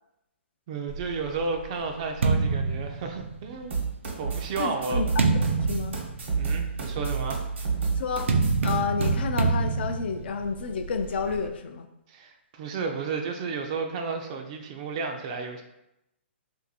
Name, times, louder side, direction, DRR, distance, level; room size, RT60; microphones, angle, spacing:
voice 1, 0.7-3.8 4.2-5.0 6.4-7.4 12.1-15.6, right 4 dB, 30° right, 4 dB, 0.4 m, -32 dB
sound 1, 0.9-3.7 4.4-11.5, right 4 dB, 90° right, 0.5 m, -28 dB
sound 2, 3.7-9.1, right 5 dB, 75° right, 1.0 m, -30 dB
voice 2, 4.6-5.1 5.4-6.0 7.9-8.3 8.6-11.9, left 5 dB, 55° left, 6 dB, 0.4 m, -30 dB
2.6 x 2.6 x 4.0 m, 0.85 s
hypercardioid pair, 160°, 7 cm